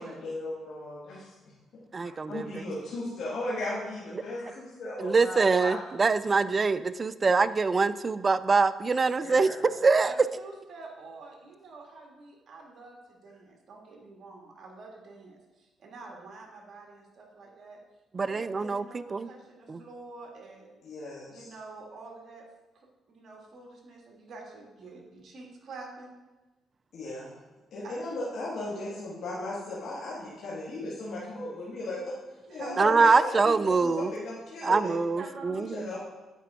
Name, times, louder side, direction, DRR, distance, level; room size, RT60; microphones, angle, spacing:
voice 1, 0.0-1.3 1.7-5.7 9.2-9.7 20.8-21.5 26.9-27.4 27.7-32.1 32.5-34.9 35.5-36.0, left 2 dB, 70° left, -7 dB, 1.8 m, -36 dB
voice 2, 1.9-2.6 5.0-10.1 18.1-18.8 19.1-19.3 19.7-19.8 32.8-34.1 34.6-35.9, right 4 dB, 35° right, 15 dB, 0.3 m, -24 dB
voice 3, 10.0-17.8 18.2-20.8 21.3-22.5 22.7-26.1 27.8-28.0 32.5-33.1 35.2-35.7, right 3 dB, 55° right, 0 dB, 1.8 m, -46 dB
9.3 x 4.5 x 3.7 m, 1.2 s
cardioid pair, 90°, 0 cm